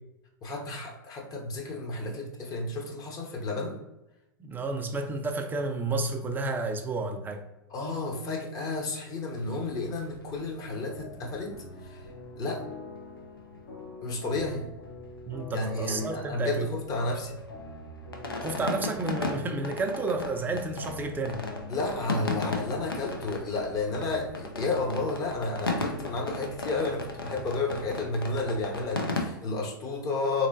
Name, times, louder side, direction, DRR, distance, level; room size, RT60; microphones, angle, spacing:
voice 1, 0.4-3.8 7.7-11.5 11.8-12.0 12.4-12.6 14.0-14.7 15.5-17.4 21.7-30.5, left 3 dB, 30° left, 0 dB, 0.8 m, -32 dB
voice 2, 4.4-7.4 15.3-16.7 18.4-21.4, right 3 dB, 15° right, 4 dB, 0.4 m, -31 dB
sound 1, 9.3-13.8 14.1-14.2 14.4-14.6 14.8-15.9 16.2-29.2, left 2 dB, 90° left, 0.6 m, -36 dB
sound 2, 10.9-22.9, left 3 dB, 70° left, 1.2 m, -45 dB
3.6 x 3.1 x 2.6 m, 0.96 s
figure-of-eight pair, 100°, 12 cm